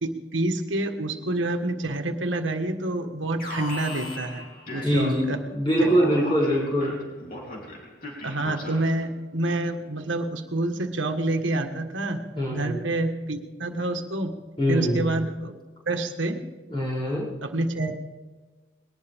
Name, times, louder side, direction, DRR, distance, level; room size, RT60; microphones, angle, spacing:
voice 1, 0.0-5.4 5.8-5.9 8.2-12.2 12.5-14.3 14.7-15.6 15.9-16.4 17.4-17.9, right 2 dB, 85° right, 5 dB, 1.5 m, -28 dB
Alarm, 3.4-5.4 5.8-9.0, left 2 dB, 45° left, 3.3 m, -38 dB
voice 2, 4.8-7.0 12.4-12.8 14.6-15.1 16.7-17.3, equal, 25° left, -6 dB, 7.0 m, -23 dB
20.5 x 18.5 x 3.6 m, 1.3 s
head